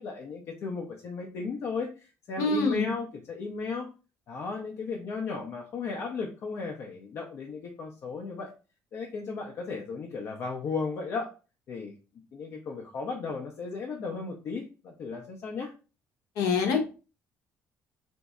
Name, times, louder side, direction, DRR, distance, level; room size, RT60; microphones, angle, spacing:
voice 1, 0.0-3.9 4.3-8.5 8.9-11.3 11.7-11.9 12.3-15.7, left 4 dB, 50° left, 0 dB, 0.6 m, -35 dB
voice 2, 2.4-2.9 16.4-16.8, left 4 dB, 75° left, 4 dB, 0.9 m, -25 dB
4.0 x 2.6 x 2.3 m, 0.33 s
cardioid pair, 155°, 5 cm